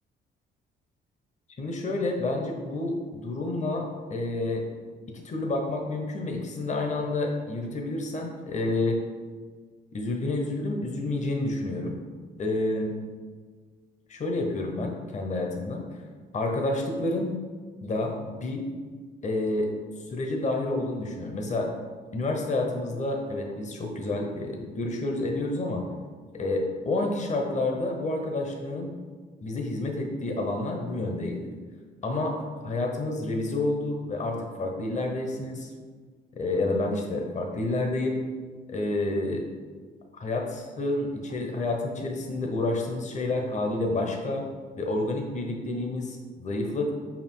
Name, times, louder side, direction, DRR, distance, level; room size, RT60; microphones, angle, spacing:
voice 1, 1.6-4.6 5.1-9.0 9.9-12.0 12.4-12.9 14.1-15.8 16.3-17.3 17.8-18.6 19.2-19.7 20.1-21.7 22.1-25.8 26.3-28.9 29.4-31.5 32.0-35.7 36.3-38.2 38.7-39.5 40.1-44.4 44.8-46.9, left 2 dB, 35° left, 2 dB, 0.9 m, -29 dB
5.3 x 4.7 x 3.7 m, 1.5 s
cardioid pair, 90°, 20 cm